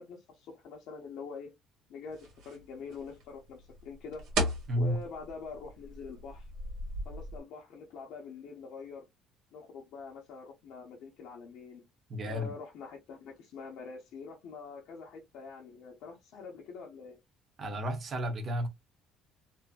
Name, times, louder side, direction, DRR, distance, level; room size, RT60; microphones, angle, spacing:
voice 1, 0.0-1.5 1.9-4.2 4.8-6.5 7.0-9.1 9.5-11.9 12.2-17.2, left 5 dB, 70° left, 0.6 m, -45 dB
sound 1, 2.1-7.4, right 1 dB, 70° right, 1.4 m, -38 dB
voice 2, 4.7-5.0 12.1-12.5 17.6-18.7, equal, 40° right, 0.8 m, -32 dB
2.6 x 2.3 x 2.4 m
cardioid pair, 110°, 0 cm